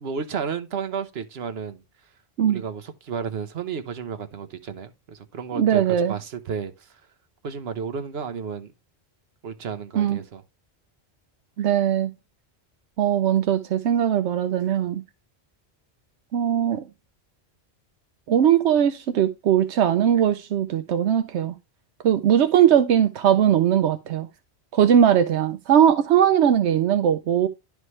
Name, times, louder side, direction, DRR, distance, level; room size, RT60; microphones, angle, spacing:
voice 1, 0.0-1.8 2.5-6.9 7.4-8.7 9.4-10.4, right 6 dB, 65° right, 1.2 m, -32 dB
voice 2, 5.6-6.2 9.9-10.2 11.6-12.1 13.0-15.0 16.3-16.9 18.3-21.5 22.0-24.3 24.7-27.5, right 9 dB, 85° right, 0.9 m, -20 dB
11.0 x 4.9 x 3.1 m
omnidirectional pair, 1.1 m